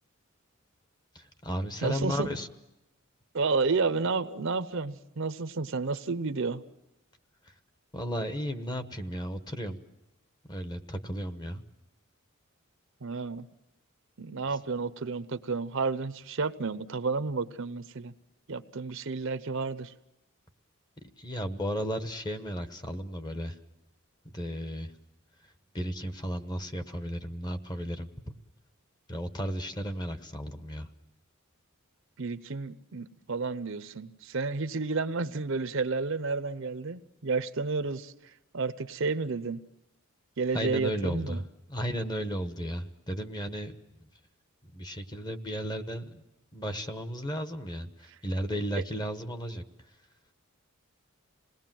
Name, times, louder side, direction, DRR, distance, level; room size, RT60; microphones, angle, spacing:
voice 1, 1.1-2.5 7.9-9.8 10.5-11.6 21.2-23.6 24.3-24.9 25.7-28.4 29.1-30.9 40.5-41.4 41.7-43.8 44.7-46.2 46.5-49.6, equal, 20° left, 9 dB, 1.1 m, -34 dB
voice 2, 1.8-2.3 3.3-6.6 13.0-13.5 14.2-18.1 18.5-19.9 32.2-39.6 40.4-41.4 48.7-48.8, right 4 dB, 65° right, 13 dB, 0.8 m, -31 dB
27.0 x 19.5 x 7.6 m, 0.93 s
head